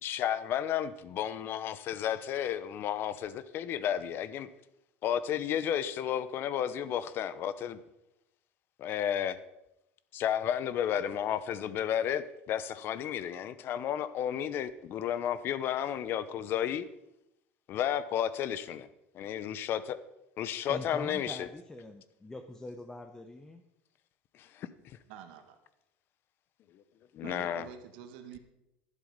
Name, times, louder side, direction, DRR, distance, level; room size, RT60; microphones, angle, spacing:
voice 1, 0.0-4.5 5.0-7.8 8.8-9.4 10.1-16.9 17.7-18.9 19.1-20.0 20.4-21.5 24.3-25.0 27.1-27.7, left 10 dB, 50° left, 15 dB, 0.9 m, -32 dB
voice 2, 20.7-23.6, left 2 dB, 10° left, 5 dB, 0.9 m, -44 dB
voice 3, 25.1-25.6 27.2-28.4, right 9 dB, 80° right, 7 dB, 1.6 m, -47 dB
11.5 x 11.0 x 5.3 m, 0.88 s
supercardioid pair, 120°, 5 cm